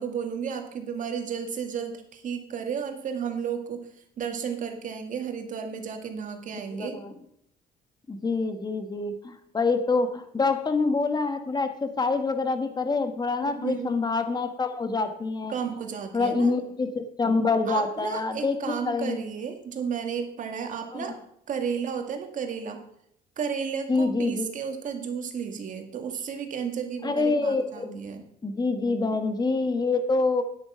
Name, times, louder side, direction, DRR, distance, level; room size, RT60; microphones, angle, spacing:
voice 1, 0.0-3.9 4.2-7.0 13.4-13.9 15.5-16.5 17.7-21.2 21.5-22.8 23.4-28.2, right 7 dB, 50° right, 5 dB, 2.1 m, -33 dB
voice 2, 6.7-7.1 8.1-15.5 16.1-19.2 20.9-21.1 23.9-24.5 27.0-28.0 28.4-30.4, left 3 dB, 25° left, 8 dB, 1.4 m, -26 dB
9.8 x 8.7 x 5.8 m, 0.71 s
cardioid pair, 110°, 17 cm